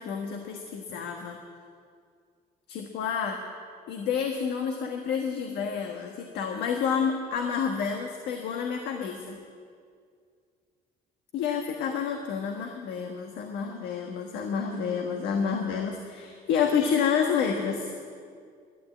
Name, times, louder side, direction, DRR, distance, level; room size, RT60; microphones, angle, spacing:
voice 1, 0.0-1.4 2.7-3.4 3.9-9.4 11.3-17.9, left 6 dB, 85° left, 3 dB, 1.4 m, -29 dB
12.5 x 12.0 x 8.4 m, 2.2 s
cardioid pair, 110°, 17 cm